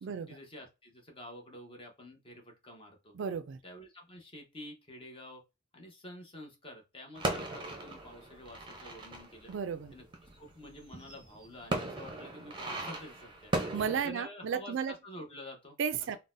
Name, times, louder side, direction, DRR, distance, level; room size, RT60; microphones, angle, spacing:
voice 1, 0.0-3.1 3.6-5.4 5.7-9.5 9.9-10.0 10.4-13.5 14.0-15.8, left 1 dB, 25° left, 0.9 m, -49 dB
voice 2, 3.1-3.6 9.5-9.9 13.7-14.9 15.8-16.2, right 7 dB, 65° right, 0.3 m, -33 dB
sound 1, 7.2-14.0, right 2 dB, 25° right, 0.6 m, -38 dB
3.9 x 2.1 x 2.5 m
head